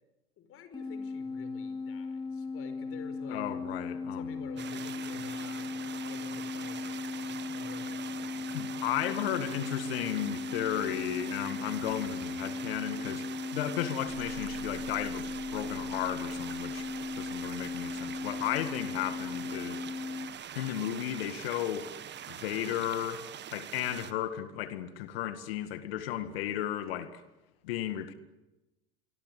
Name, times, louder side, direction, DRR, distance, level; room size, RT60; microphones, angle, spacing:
voice 1, 0.4-3.6 4.0-8.6 9.3-9.7, left 5 dB, 45° left, 5.2 m, -50 dB
sound 1, 0.7-20.3, left 4 dB, 15° left, 2.7 m, -37 dB
voice 2, 3.3-4.4 8.5-16.9 17.2-19.8 20.6-21.9 22.3-27.2 27.6-28.1, left 11 dB, 70° left, 1.9 m, -34 dB
sound 2, 4.6-24.1, right 9 dB, 35° right, 1.7 m, -44 dB
sound 3, 9.3-21.3, right 13 dB, 50° right, 5.7 m, -55 dB
26.0 x 24.0 x 8.3 m
hypercardioid pair, 80°, 31 cm